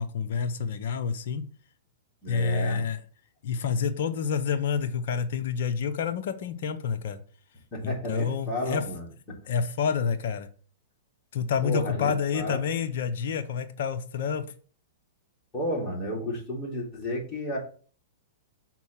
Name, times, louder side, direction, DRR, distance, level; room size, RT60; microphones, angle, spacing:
voice 1, 0.0-1.4 2.3-3.0 3.4-7.2 7.8-8.8 9.5-10.5 11.3-14.5, left 6 dB, 65° left, 7 dB, 0.7 m, -28 dB
voice 2, 2.2-2.8 7.7-9.1 11.6-12.6 15.5-17.6, equal, 25° left, -3 dB, 3.5 m, -32 dB
6.1 x 4.4 x 5.7 m, 0.42 s
hypercardioid pair, 130°, 0 cm